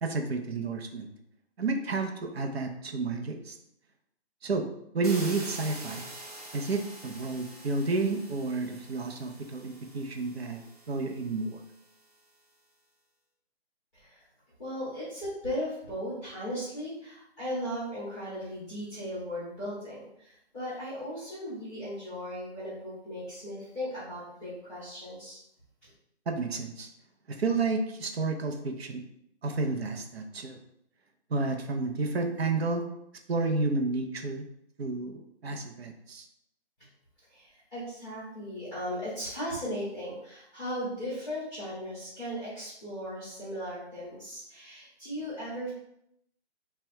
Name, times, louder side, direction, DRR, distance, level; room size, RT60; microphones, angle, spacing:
voice 1, 0.0-1.1 1.6-3.6 4.4-4.7 4.9-6.1 6.5-10.6 10.9-11.6 26.3-26.9 27.3-29.0 29.4-30.6 31.3-32.9 33.3-34.5 34.8-36.3, right 3 dB, 70° right, 4 dB, 0.7 m, -31 dB
sound 1, 5.0-11.9, right 2 dB, 35° right, 0.7 m, -46 dB
voice 2, 13.9-14.3 14.6-25.4 25.8-25.9 37.3-45.7, equal, 5° left, -12 dB, 0.6 m, -37 dB
3.3 x 2.3 x 4.4 m, 0.78 s
hypercardioid pair, 170°, 33 cm